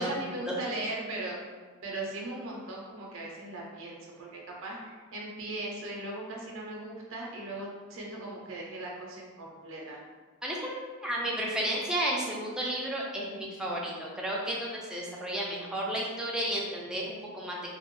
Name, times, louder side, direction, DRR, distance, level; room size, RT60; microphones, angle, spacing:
voice 1, 0.0-1.4 1.8-10.0, right 2 dB, 65° right, -3 dB, 0.5 m, -38 dB
voice 2, 10.4-17.7, right 1 dB, 5° right, -4 dB, 0.3 m, -32 dB
2.2 x 2.0 x 3.0 m, 1.4 s
head